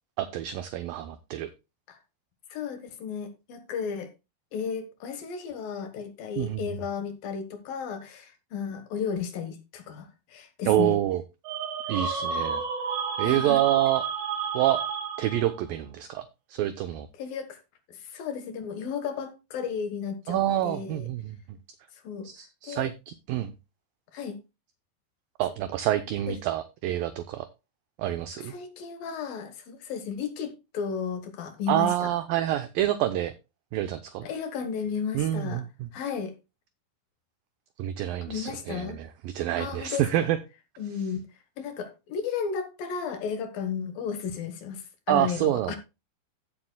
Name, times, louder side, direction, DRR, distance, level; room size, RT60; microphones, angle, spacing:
voice 1, 0.2-1.5 6.4-6.6 10.7-11.2 11.9-12.6 13.2-14.0 14.5-14.8 15.2-16.2 16.5-17.1 20.3-21.4 22.2-23.5 25.4-27.5 28.0-28.5 31.7-33.3 33.7-34.3 35.1-35.9 37.8-40.4 45.1-45.8, right 13 dB, 75° right, 2.2 m, -27 dB
voice 2, 2.5-4.1 4.5-11.0 12.1-12.2 13.2-13.6 17.2-17.6 17.9-21.1 22.0-22.3 22.7-22.9 24.1-24.4 26.3-26.4 28.5-32.1 34.2-35.6 35.9-36.3 38.3-39.0 39.6-40.3 40.8-41.3 41.6-45.8, left 6 dB, 65° left, 2.9 m, -34 dB
sound 1, 11.4-15.6, right 6 dB, 50° right, 2.7 m, -31 dB
15.5 x 7.6 x 2.2 m
omnidirectional pair, 4.7 m